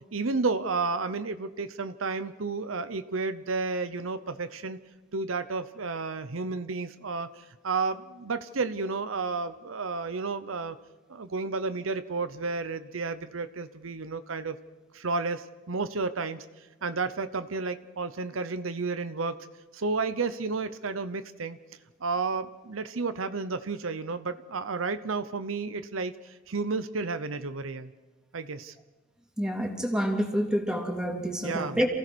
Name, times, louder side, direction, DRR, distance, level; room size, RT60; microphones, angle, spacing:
voice 1, 0.1-4.8 5.1-10.8 11.1-14.6 14.9-19.4 19.7-21.6 22.0-27.9 28.3-28.7 31.4-31.8, right 4 dB, 75° right, 11 dB, 0.9 m, -32 dB
voice 2, 29.4-31.9, equal, 5° right, 1 dB, 2.9 m, -28 dB
28.0 x 16.5 x 6.3 m, 1.2 s
head